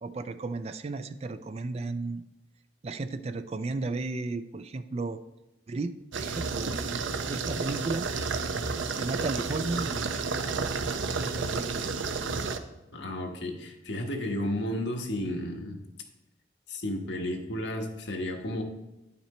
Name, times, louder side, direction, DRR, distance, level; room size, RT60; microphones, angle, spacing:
voice 1, 0.0-2.2 2.8-5.2 5.7-8.1 9.0-10.3 11.1-12.1, right 3 dB, 35° right, 11 dB, 0.4 m, -34 dB
sound 1, 6.1-12.6, right 4 dB, 85° right, 0.6 m, -31 dB
voice 2, 12.9-15.8 16.7-18.6, left 1 dB, 70° left, 2 dB, 1.3 m, -32 dB
10.5 x 5.9 x 4.3 m, 0.97 s
head